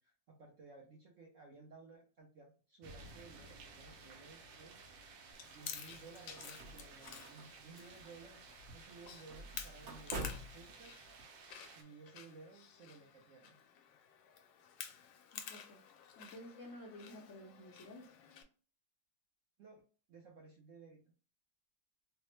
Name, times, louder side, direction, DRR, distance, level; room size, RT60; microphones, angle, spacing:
voice 1, 0.0-4.8 5.4-8.4 8.7-11.0 11.7-13.6 19.6-19.8 20.1-21.0, right 4 dB, 65° right, -1 dB, 0.7 m, -57 dB
sound 1, 2.8-11.8, right 4 dB, 85° right, 1.3 m, -56 dB
Chewing mastication, 5.3-18.4, left 8 dB, 85° left, 1.3 m, -52 dB
sound 2, 5.9-11.2, right 1 dB, 50° right, 1.0 m, -49 dB
voice 2, 15.3-15.8 16.2-18.1, left 1 dB, 70° left, -2 dB, 0.7 m, -52 dB
3.3 x 2.0 x 3.0 m, 0.38 s
omnidirectional pair, 2.0 m